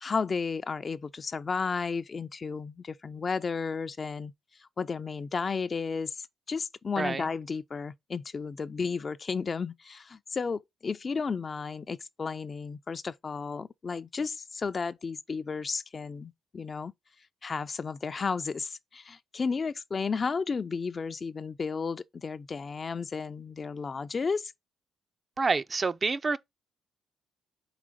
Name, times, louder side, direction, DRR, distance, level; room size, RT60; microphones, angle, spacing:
voice 1, 0.0-4.3 4.6-16.9 17.4-24.5, left 5 dB, 35° left, 0.4 m, -33 dB
voice 2, 7.0-7.3 25.4-26.4, right 4 dB, 35° right, 0.5 m, -28 dB
4.9 x 3.8 x 5.0 m
cardioid pair, 90°, 0 cm